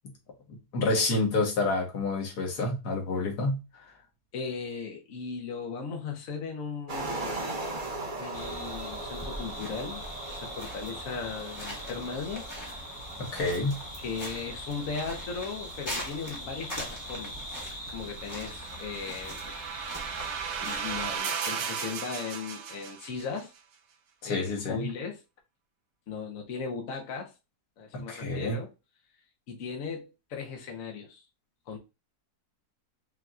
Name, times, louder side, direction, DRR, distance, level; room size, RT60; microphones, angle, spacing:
voice 1, 0.7-3.6 13.2-13.8 24.2-24.9 27.9-28.6, left 2 dB, 85° left, 1.8 m, -28 dB
voice 2, 4.3-7.4 8.2-10.0 10.3-12.5 14.0-17.3 17.9-19.4 20.6-23.5 24.3-25.2 26.1-27.3 27.8-28.7 29.5-31.2 31.7-31.8, left 5 dB, 60° left, 1.3 m, -37 dB
sound 1, 6.9-19.4, right 2 dB, 35° right, 1.2 m, -41 dB
sound 2, 8.3-21.2, equal, 15° left, 1.4 m, -40 dB
sound 3, 18.1-23.4, right 7 dB, 80° right, 1.3 m, -36 dB
5.7 x 2.9 x 2.4 m
omnidirectional pair, 1.7 m